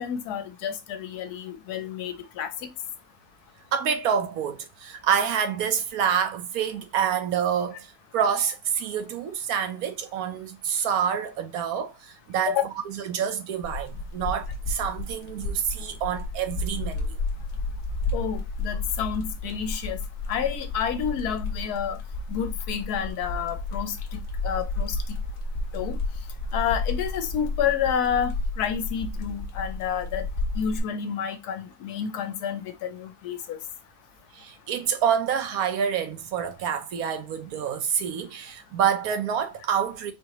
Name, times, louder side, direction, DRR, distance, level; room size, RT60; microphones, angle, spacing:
voice 1, 0.0-2.5 12.5-12.6 18.1-20.0 20.3-22.0 22.3-23.9 24.4-25.0 25.7-26.0 26.5-30.2 30.6-33.6, left 8 dB, 75° left, 1.2 m, -29 dB
voice 2, 3.7-17.2 34.3-40.1, right 8 dB, 70° right, 1.1 m, -27 dB
sound 1, 13.6-30.8, left 2 dB, 50° left, 1.1 m, -32 dB
4.4 x 2.8 x 2.8 m
omnidirectional pair, 1.7 m